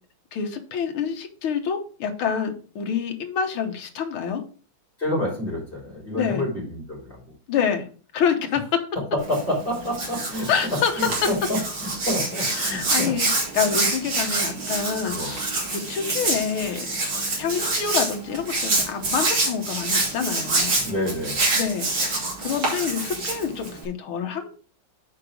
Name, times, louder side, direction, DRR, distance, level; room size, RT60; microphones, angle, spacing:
voice 1, 0.3-4.4 6.2-6.4 7.5-7.9 8.1-8.8 10.5-10.9 11.2-11.3 12.4-15.4 15.7-16.9 17.4-20.7 21.6-24.5, left 7 dB, 80° left, 5 dB, 2.0 m, -27 dB
voice 2, 5.0-7.2 9.3-11.6 12.0-13.1 15.1-15.3 20.8-21.5, left 1 dB, 25° left, -4 dB, 3.9 m, -28 dB
Hands, 9.2-23.8, right 2 dB, 70° right, 3.5 m, -26 dB
6.7 x 5.0 x 6.2 m, 0.40 s
omnidirectional pair, 2.3 m